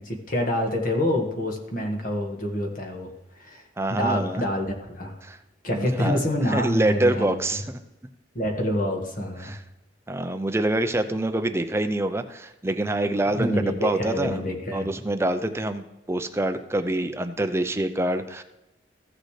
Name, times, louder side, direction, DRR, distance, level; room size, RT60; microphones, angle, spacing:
voice 1, 0.0-3.1 3.4-3.6 3.9-5.1 5.6-7.3 8.3-9.5 13.3-14.9, left 1 dB, 50° left, 2 dB, 1.7 m, -27 dB
voice 2, 3.8-4.4 5.2-5.4 5.7-6.2 6.5-7.8 9.4-9.6 10.1-14.4 14.7-18.4, right 1 dB, 15° right, 9 dB, 0.5 m, -26 dB
15.0 x 6.5 x 3.3 m, 1.0 s
head